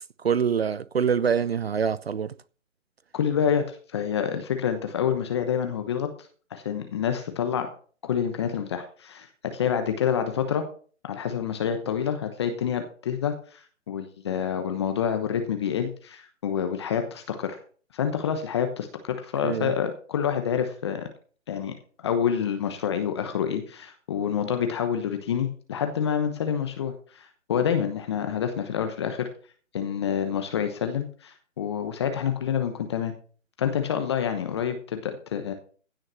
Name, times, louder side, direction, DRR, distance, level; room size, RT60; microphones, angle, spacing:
voice 1, 0.2-2.3 19.4-19.7, right 7 dB, 50° right, 0.6 m, -25 dB
voice 2, 3.1-6.1 6.5-7.7 8.0-9.3 9.5-10.6 11.0-17.6 17.9-21.1 21.5-21.7 22.0-29.3 29.7-33.1 33.6-35.5, left 8 dB, 20° left, 1.0 m, -27 dB
16.0 x 6.4 x 5.6 m
figure-of-eight pair, 155°, 39 cm